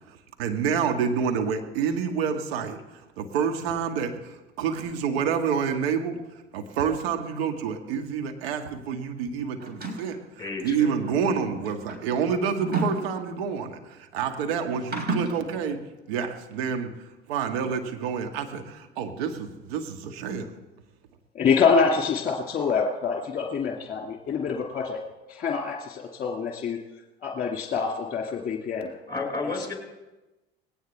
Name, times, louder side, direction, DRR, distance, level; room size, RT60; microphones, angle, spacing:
voice 1, 0.0-6.2 6.5-10.2 10.6-15.8 16.1-16.9 17.3-20.5, right 6 dB, 70° right, 5 dB, 1.7 m, -28 dB
sound 1, 9.6-10.2 11.2-13.6 14.7-15.4, right 2 dB, 30° right, 4.3 m, -31 dB
voice 2, 10.4-11.2 17.5-17.7 28.8-29.7, left 3 dB, 15° left, 1 dB, 5.3 m, -33 dB
voice 3, 21.3-25.0 25.3-26.8 27.2-28.9 29.4-29.7, left 5 dB, 30° left, 2 dB, 2.2 m, -26 dB
20.0 x 17.5 x 3.5 m, 1.1 s
figure-of-eight pair, 60°, 31 cm